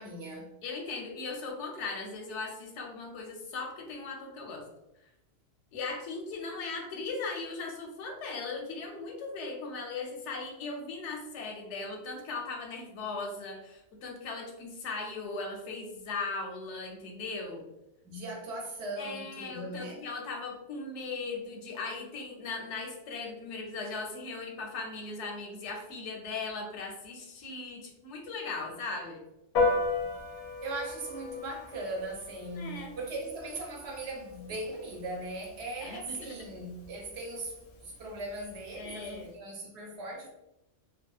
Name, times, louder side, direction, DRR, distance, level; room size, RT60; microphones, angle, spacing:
voice 1, 0.0-0.5 18.0-20.0 30.6-40.3, right 2 dB, 70° right, -1 dB, 0.9 m, -39 dB
voice 2, 0.6-4.6 5.7-17.6 19.0-29.2 32.6-32.9 35.8-36.2 38.8-39.3, left 3 dB, 85° left, 1 dB, 0.9 m, -38 dB
Piano, 29.5-39.3, left 3 dB, 60° left, 0.7 m, -36 dB
2.8 x 2.0 x 2.3 m, 0.90 s
omnidirectional pair, 1.2 m